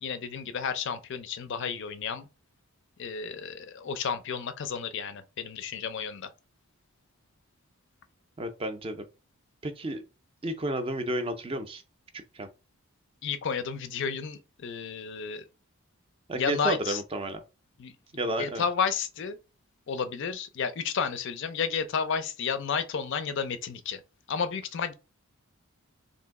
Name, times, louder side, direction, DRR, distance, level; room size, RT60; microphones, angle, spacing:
voice 1, 0.0-2.3 3.0-6.3 13.2-15.4 16.3-17.0 17.8-18.0 18.4-19.4 19.9-24.0 24.3-24.9, left 6 dB, 55° left, 0.4 m, -32 dB
voice 2, 8.4-9.0 9.6-10.0 10.4-11.8 12.3-12.5 16.3-17.4 18.1-18.6, right 1 dB, 25° right, 0.4 m, -31 dB
2.9 x 2.6 x 3.5 m
head